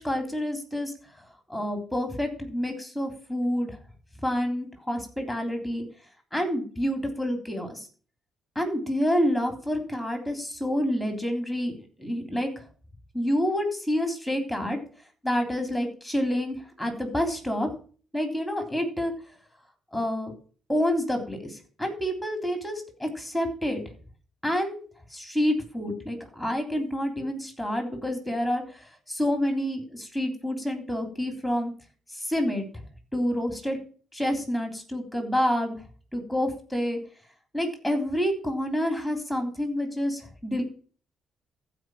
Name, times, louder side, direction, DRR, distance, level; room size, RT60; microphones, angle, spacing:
voice 1, 0.0-3.8 4.2-5.8 6.3-7.9 8.5-12.6 13.1-14.8 15.2-17.7 18.1-19.1 19.9-20.3 20.7-23.8 24.4-24.8 25.1-31.7 32.1-32.7 33.1-33.8 34.1-35.8 36.1-37.0 37.5-40.6, equal, ahead, 4 dB, 3.4 m, -28 dB
14.5 x 5.1 x 6.4 m, 0.40 s
cardioid pair, 90°, 0 cm